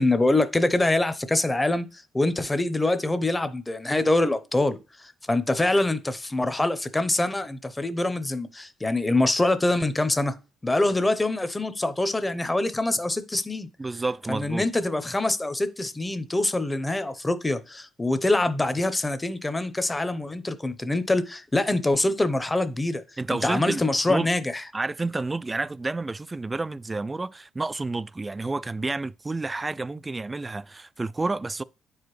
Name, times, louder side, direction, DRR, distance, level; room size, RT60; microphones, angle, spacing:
voice 1, 0.0-1.9 2.1-10.3 10.6-13.7 14.3-23.0 23.3-24.6, left 2 dB, 15° left, 0.8 m, -24 dB
voice 2, 13.8-14.7 23.2-23.8 24.1-24.3 24.7-31.6, right 3 dB, 20° right, 0.3 m, -30 dB
9.1 x 4.8 x 3.2 m
cardioid pair, 90°, 0 cm